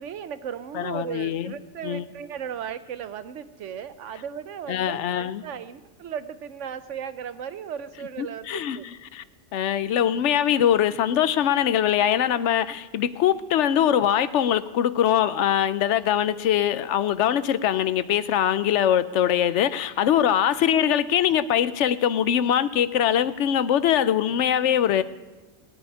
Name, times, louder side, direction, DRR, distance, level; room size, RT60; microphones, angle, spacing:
voice 1, 0.0-8.9, right 8 dB, 85° right, 1.1 m, -36 dB
voice 2, 0.7-1.5 1.8-2.1 4.7-5.4 8.2-8.8 9.1-9.2 9.5-25.0, left 10 dB, 75° left, 0.9 m, -22 dB
17.0 x 6.3 x 9.7 m
omnidirectional pair, 1.2 m